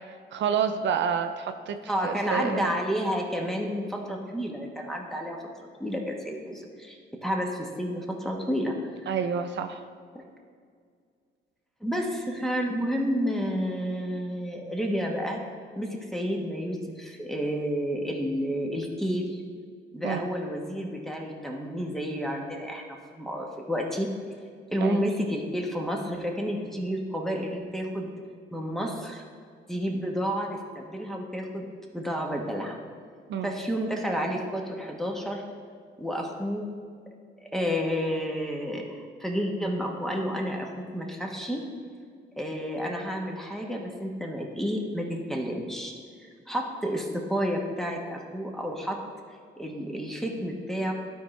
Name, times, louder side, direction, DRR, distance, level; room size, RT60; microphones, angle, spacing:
voice 1, 0.1-1.8 2.0-2.7 9.1-9.8 20.0-20.2 24.8-25.0 33.3-33.5, right 7 dB, 65° right, 7 dB, 0.5 m, -29 dB
voice 2, 1.9-5.4 5.8-9.1 10.1-10.2 11.8-15.4 15.8-19.4 19.9-24.1 24.7-28.1 28.5-29.2 29.7-32.8 33.4-35.4 36.0-36.7 37.4-41.7 42.4-45.9 46.2-49.0 49.6-50.9, equal, ahead, 0 dB, 1.3 m, -30 dB
12.0 x 4.5 x 3.3 m, 2.1 s
cardioid pair, 90°, 20 cm